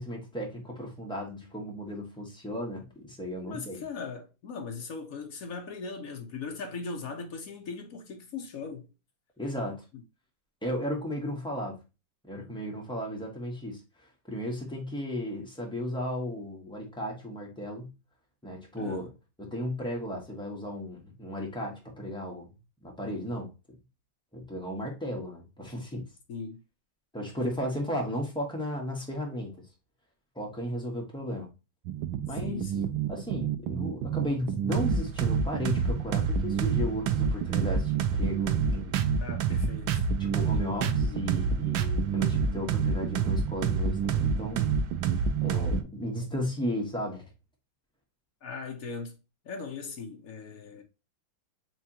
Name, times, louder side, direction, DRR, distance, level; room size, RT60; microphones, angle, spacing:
voice 1, 0.0-3.8 9.4-9.8 10.6-11.8 12.3-17.9 18.4-19.1 19.4-22.5 22.8-23.5 24.3-26.1 27.1-29.6 30.3-31.5 32.3-32.7 33.1-39.0 40.2-44.7 45.4-47.3, equal, 5° left, 1.1 m, -35 dB
voice 2, 3.4-8.9 18.8-19.1 26.3-26.6 32.4-32.9 39.2-40.0 48.4-49.2 49.4-50.8, left 4 dB, 55° left, 1.0 m, -39 dB
sound 1, 31.8-45.8, right 6 dB, 85° right, 1.4 m, -28 dB
4.6 x 3.3 x 2.8 m
omnidirectional pair, 2.1 m